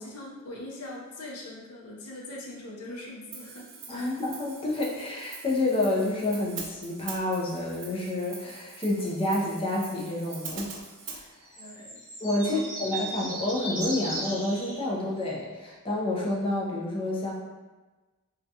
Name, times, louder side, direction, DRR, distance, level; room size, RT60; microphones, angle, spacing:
voice 1, 0.0-3.7 3.9-4.2 11.5-12.0 12.4-12.6 13.1-13.2, left 1 dB, 70° left, -3 dB, 0.6 m, -42 dB
Hi-hat, 3.3-11.2, right 5 dB, 55° right, 0.4 m, -43 dB
voice 2, 3.9-10.8 11.1-11.3 12.2-17.3, left 2 dB, 25° left, -3 dB, 0.4 m, -29 dB
sound 1, 10.3-10.7 11.4-14.8 15.2-15.3, right 1 dB, 40° right, 1.1 m, -36 dB
2.4 x 2.2 x 2.7 m, 1.2 s
head